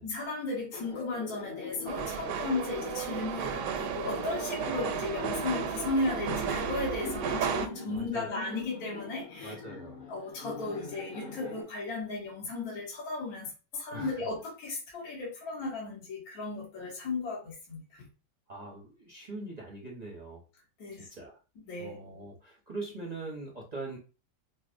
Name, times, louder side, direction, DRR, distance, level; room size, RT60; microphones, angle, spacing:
voice 1, 0.0-9.5 10.1-18.1 20.8-21.1 21.7-22.0, left 3 dB, 60° left, -3 dB, 1.7 m, -35 dB
Laughter, 0.7-11.6, left 5 dB, 45° left, 0.7 m, -43 dB
sound 1, 1.9-7.7, right 7 dB, 80° right, 1.2 m, -33 dB
voice 2, 7.8-8.5 9.4-10.0 13.9-14.3 18.5-20.4 20.9-21.4 21.8-24.0, right 2 dB, 40° right, -2 dB, 0.6 m, -42 dB
5.5 x 2.0 x 2.5 m, 0.32 s
omnidirectional pair, 1.8 m